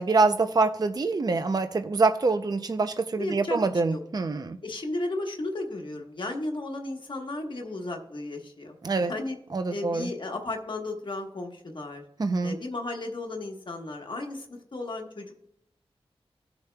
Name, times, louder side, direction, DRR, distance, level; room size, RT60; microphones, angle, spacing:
voice 1, 0.0-4.6 8.8-9.1 9.5-10.1 12.2-12.6, right 3 dB, 40° right, 8 dB, 0.5 m, -25 dB
voice 2, 3.2-3.6 3.9-4.0 4.6-9.4 9.7-12.0 12.4-15.5, left 2 dB, 55° left, 2 dB, 1.2 m, -34 dB
18.5 x 7.0 x 2.2 m, 0.72 s
wide cardioid pair, 85°, 10 cm